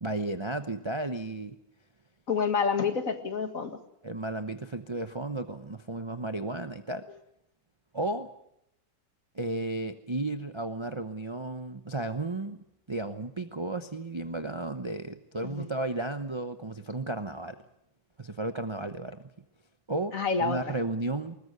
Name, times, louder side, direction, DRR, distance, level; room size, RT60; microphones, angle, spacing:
voice 1, 0.0-1.6 4.0-7.1 7.9-8.3 9.3-17.6 18.2-19.2 19.9-21.4, right 2 dB, 25° right, 8 dB, 0.6 m, -34 dB
voice 2, 2.3-3.8 15.4-15.7 20.1-20.7, left 5 dB, 50° left, 8 dB, 2.1 m, -28 dB
21.0 x 20.0 x 8.1 m, 0.78 s
omnidirectional pair, 1.9 m